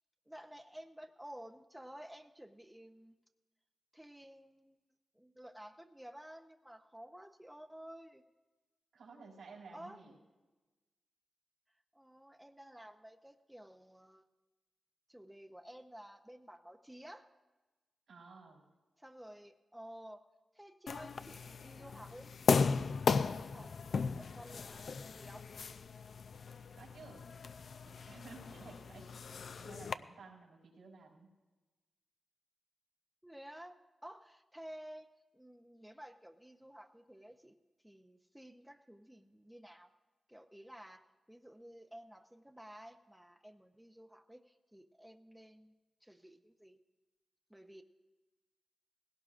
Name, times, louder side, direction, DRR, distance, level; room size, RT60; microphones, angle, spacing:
voice 1, 0.3-3.1 3.9-4.8 5.1-8.2 9.7-10.0 11.9-14.2 15.1-17.3 19.0-20.2 20.5-22.9 23.2-25.5 33.2-37.5 37.8-39.9 40.3-45.7 46.0-46.8 47.5-47.8, equal, 5° right, 5 dB, 0.6 m, -53 dB
voice 2, 8.9-10.1 18.1-18.6 26.7-27.2 27.8-29.3 29.6-31.3, right 4 dB, 85° right, -2 dB, 4.0 m, -54 dB
sound 1, 20.9-29.9, left 5 dB, 60° left, 0.4 m, -36 dB
19.5 x 17.0 x 2.5 m, 1.2 s
wide cardioid pair, 120°, 0 cm